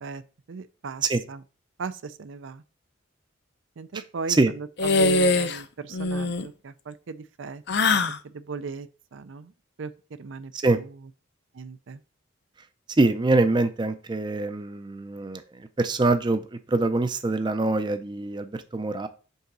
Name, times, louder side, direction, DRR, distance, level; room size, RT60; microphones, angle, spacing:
voice 1, 0.5-1.4 1.8-2.6 3.8-7.6 7.9-9.5 9.8-9.9 10.2-11.0 11.5-12.0, right 4 dB, 75° right, 0.5 m, -37 dB
sound 1, 4.8-5.6 5.9-6.5 7.7-8.2, left 3 dB, 55° left, 0.6 m, -22 dB
voice 2, 13.0-19.1, right 2 dB, 25° right, 0.4 m, -24 dB
5.5 x 3.9 x 6.0 m
head